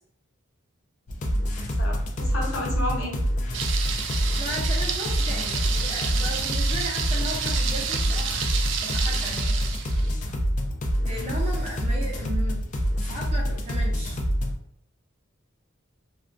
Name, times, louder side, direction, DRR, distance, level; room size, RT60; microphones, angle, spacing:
sound 1, 1.1-14.5, equal, 35° left, 0.3 m, -26 dB
voice 1, 1.8-3.1, left 1 dB, 85° left, -4 dB, 0.9 m, -32 dB
Thunder, 3.5-10.1, right 7 dB, 60° right, 0.3 m, -30 dB
voice 2, 4.4-8.5 8.8-10.0 11.0-12.6 13.0-14.2, right 1 dB, 30° right, -4 dB, 0.7 m, -36 dB
2.3 x 2.2 x 2.5 m, 0.70 s
head